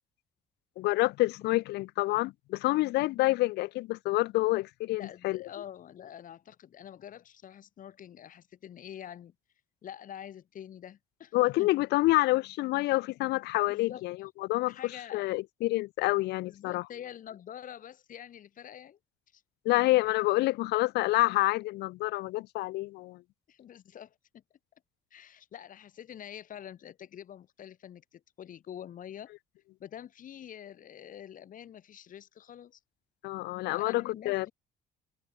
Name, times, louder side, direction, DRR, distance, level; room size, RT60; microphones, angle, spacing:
voice 1, 0.8-5.4 11.3-14.2 14.4-14.8 15.1-16.8 19.6-23.2 33.2-34.5, left 19 dB, 80° left, 0.6 m, -28 dB
voice 2, 5.0-9.3 9.8-11.7 13.7-14.0 14.7-15.3 16.5-19.0 19.3-19.4 23.5-24.4 25.1-29.3 29.8-32.8 33.7-34.5, left 10 dB, 50° left, 2.7 m, -46 dB
cardioid pair, 110°, 17 cm